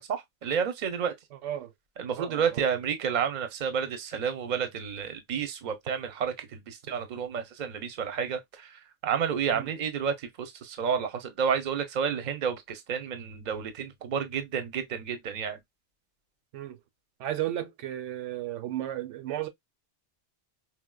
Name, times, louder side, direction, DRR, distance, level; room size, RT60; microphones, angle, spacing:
voice 1, 0.0-1.1 2.0-8.4 9.0-15.6, right 7 dB, 45° right, 0.7 m, -30 dB
voice 2, 1.3-1.7 2.2-2.6 9.5-9.7 16.5-16.8 17.2-19.5, right 12 dB, 80° right, 0.9 m, -34 dB
4.5 x 2.0 x 2.2 m
omnidirectional pair, 1.2 m